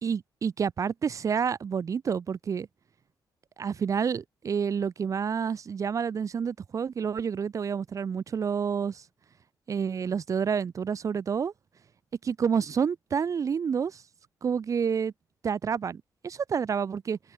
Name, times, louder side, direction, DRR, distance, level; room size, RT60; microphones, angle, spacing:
voice 1, 0.0-2.7 3.6-9.0 9.7-11.5 12.2-14.0 14.4-15.1 15.4-17.2, right 6 dB, 45° right, 1.5 m, -29 dB
open air
cardioid pair, 125°, 7 cm